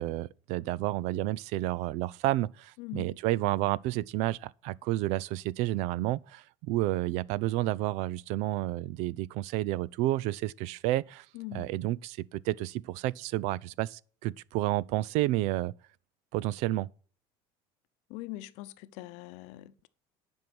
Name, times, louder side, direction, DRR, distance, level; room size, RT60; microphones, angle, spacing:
voice 1, 0.0-11.3 11.5-15.7 16.3-16.9, right 16 dB, 70° right, 0.4 m, -30 dB
voice 2, 2.8-3.1 11.3-11.7 18.1-19.9, left 17 dB, 75° left, 0.8 m, -42 dB
10.5 x 5.5 x 6.1 m
cardioid pair, 145°, 12 cm